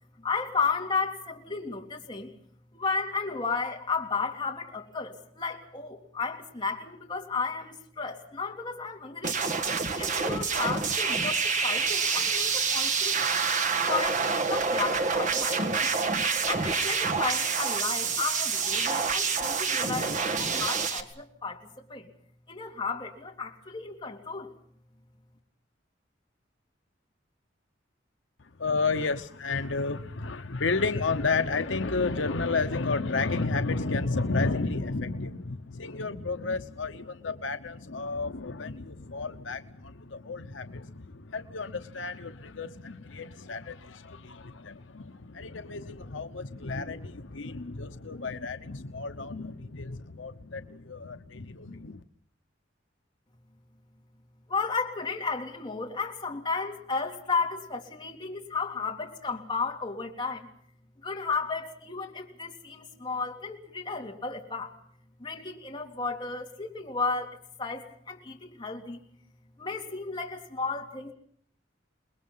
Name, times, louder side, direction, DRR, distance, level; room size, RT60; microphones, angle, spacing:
voice 1, 0.2-2.3 2.7-9.4 9.9-13.2 13.8-16.0 16.5-22.1 22.5-24.5 54.5-60.5 61.0-64.8 65.2-69.0 69.6-71.1, left 4 dB, 25° left, 0 dB, 3.3 m, -33 dB
sound 1, 9.2-21.0, right 5 dB, 40° right, 1.6 m, -27 dB
voice 2, 28.6-52.0, left 3 dB, 80° left, 8 dB, 1.0 m, -32 dB
28.5 x 21.0 x 5.6 m, 0.62 s
head